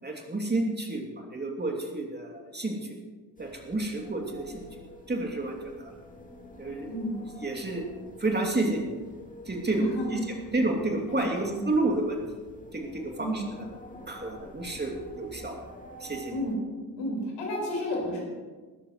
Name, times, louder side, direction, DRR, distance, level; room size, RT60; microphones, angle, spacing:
voice 1, 0.0-2.8 3.4-4.7 5.1-5.8 6.6-6.9 7.4-7.8 8.2-8.9 9.5-9.9 10.5-12.2 12.7-13.6 14.1-15.6 16.0-16.3, right 2 dB, 20° right, 1 dB, 2.8 m, -30 dB
sound 1, 3.4-16.6, left 1 dB, 15° left, 2.4 m, -47 dB
voice 2, 9.7-10.5 11.1-11.7 13.2-13.4 16.3-16.6 17.0-18.2, equal, 65° left, -2 dB, 4.9 m, -32 dB
20.0 x 13.5 x 3.2 m, 1.4 s
figure-of-eight pair, 45°, 48 cm